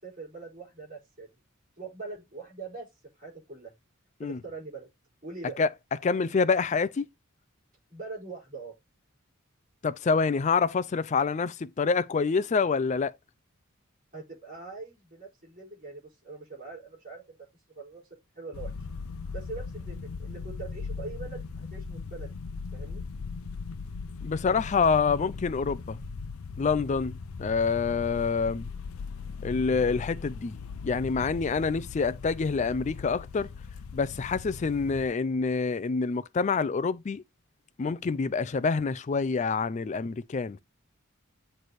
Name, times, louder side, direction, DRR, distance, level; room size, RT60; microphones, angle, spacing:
voice 1, 0.0-1.3 1.8-2.9 3.2-3.7 4.2-4.9 5.2-5.6 7.9-8.7 14.1-17.2 17.8-18.0 18.4-18.7 19.3-22.3 22.7-23.0, right 3 dB, 40° right, 5.1 m, -42 dB
voice 2, 6.0-7.1 9.8-13.1 24.2-26.0 26.6-28.7 29.4-30.5 30.8-33.5 33.9-37.2 37.8-40.6, left 5 dB, 35° left, 0.4 m, -27 dB
sound 1, 18.5-35.1, left 4 dB, 85° left, 0.6 m, -39 dB
7.8 x 3.3 x 4.2 m
head